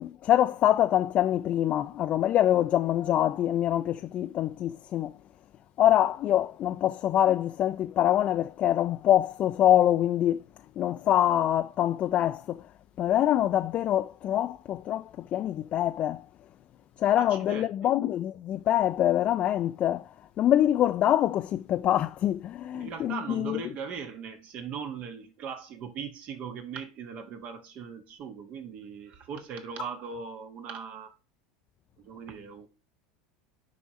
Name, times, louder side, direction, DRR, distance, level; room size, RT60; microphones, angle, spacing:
voice 1, 0.0-5.1 5.8-10.4 10.8-12.6 13.0-16.2 17.0-20.1 20.4-23.6, left 12 dB, 45° left, 0.4 m, -25 dB
voice 2, 17.2-17.9 22.7-31.1 32.0-32.7, right 6 dB, 50° right, 1.4 m, -39 dB
6.7 x 5.2 x 3.1 m
hypercardioid pair, 80°, 3 cm